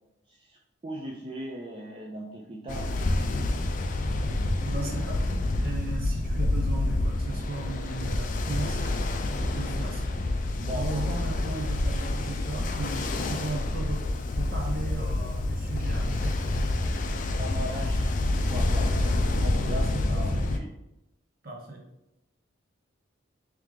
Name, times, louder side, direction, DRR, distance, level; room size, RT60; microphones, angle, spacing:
voice 1, 0.3-0.6 0.8-2.9 3.4-3.7 10.6-11.1 17.4-18.1 18.4-18.9 19.3-20.7, equal, 25° right, -2 dB, 0.4 m, -38 dB
Ocean, 2.7-20.6, left 2 dB, 40° left, 0.4 m, -28 dB
voice 2, 4.6-9.0 9.4-16.4 18.9-19.4 19.7-20.4 21.4-21.8, right 2 dB, 50° right, 0 dB, 0.9 m, -36 dB
3.3 x 3.2 x 3.6 m, 0.88 s
head